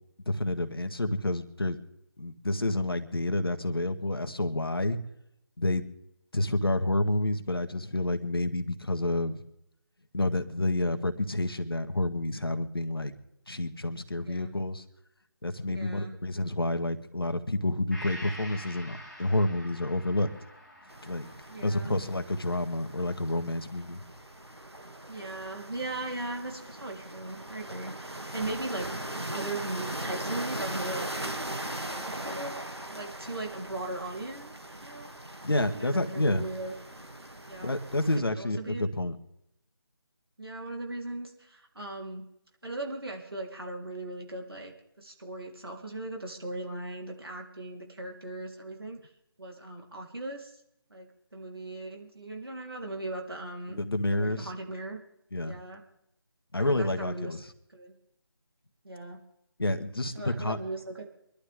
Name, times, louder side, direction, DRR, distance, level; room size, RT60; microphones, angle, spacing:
voice 1, 0.2-1.8 2.2-5.0 5.6-5.8 6.3-9.4 10.1-13.1 13.5-14.8 15.4-20.3 21.0-21.3 21.6-24.0 35.4-36.5 37.6-39.2 53.7-54.5 55.3-55.5 56.5-57.4 59.6-60.6, left 1 dB, 65° left, 8 dB, 1.6 m, -29 dB
voice 2, 14.2-14.5 15.7-16.1 21.5-21.9 25.1-28.9 29.3-31.3 31.7-32.6 32.9-34.5 34.8-35.1 35.7-36.7 37.5-37.7 38.2-38.9 40.4-42.2 42.6-44.7 45.0-49.1 49.4-50.6 50.9-53.8 54.1-55.0 55.4-55.8 56.6-57.4 57.7-58.0 58.8-59.2 60.1-61.1, right 2 dB, 70° right, 1 dB, 3.7 m, -38 dB
Gong, 17.9-25.5 25.9-26.0, equal, ahead, 0.8 m, -48 dB
sound 1, 20.9-38.2, right 1 dB, 85° right, 2.4 m, -40 dB
24.0 x 12.0 x 3.6 m, 0.80 s
figure-of-eight pair, 155°, 13 cm